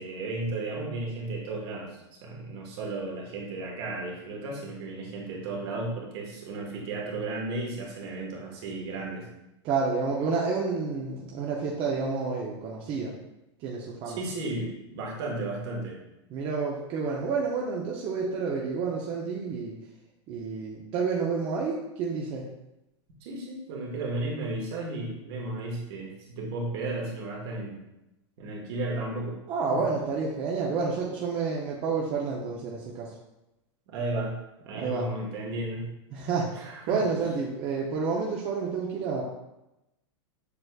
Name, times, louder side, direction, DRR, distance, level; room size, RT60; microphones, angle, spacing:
voice 1, 0.0-9.3 14.1-16.0 23.2-27.8 28.4-29.4 29.7-29.8 33.9-34.4 34.6-35.9 36.5-37.0, right 2 dB, 60° right, -1 dB, 1.4 m, -34 dB
voice 2, 9.6-13.1 13.6-14.2 16.3-19.7 20.3-22.5 29.5-33.2 34.7-35.1 36.1-39.2, right 4 dB, 40° right, -3 dB, 0.7 m, -29 dB
6.8 x 3.1 x 2.3 m, 0.93 s
hypercardioid pair, 125°, 15 cm